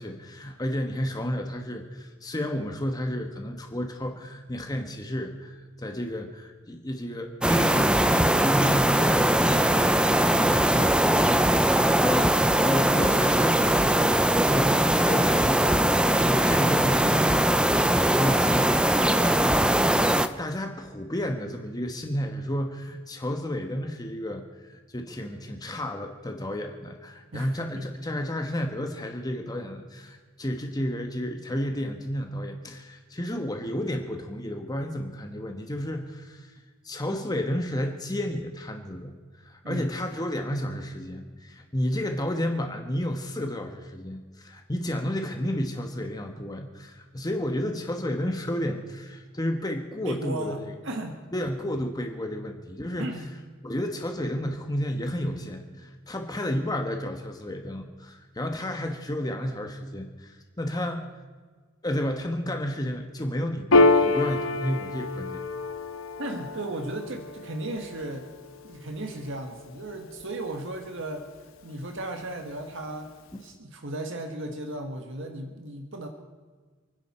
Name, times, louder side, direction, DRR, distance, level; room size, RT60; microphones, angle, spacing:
voice 1, 0.0-10.0 10.3-36.5 36.8-50.7 51.3-53.1 53.6-61.0 61.8-65.4, equal, 20° left, 4 dB, 1.2 m, -32 dB
sound 1, 7.4-20.3, right 1 dB, 5° right, 0.6 m, -21 dB
voice 2, 27.3-27.8 39.6-39.9 50.0-51.2 53.0-53.3 66.2-68.3 68.6-71.3 71.6-73.1 73.4-76.1, right 1 dB, 60° right, 4 dB, 1.6 m, -35 dB
Piano, 63.7-70.6, left 2 dB, 70° left, 1.2 m, -27 dB
29.5 x 10.5 x 4.3 m, 1.4 s
head